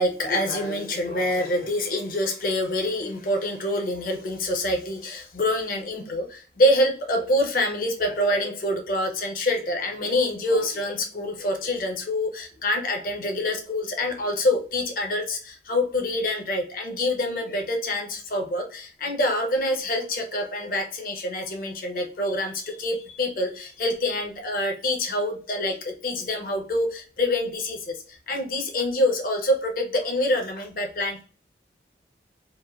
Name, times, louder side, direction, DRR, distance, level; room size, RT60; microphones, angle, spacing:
voice 1, 0.0-28.0 28.3-31.2, left 1 dB, 50° left, 3 dB, 0.7 m, -26 dB
3.0 x 2.2 x 2.3 m, 0.40 s
head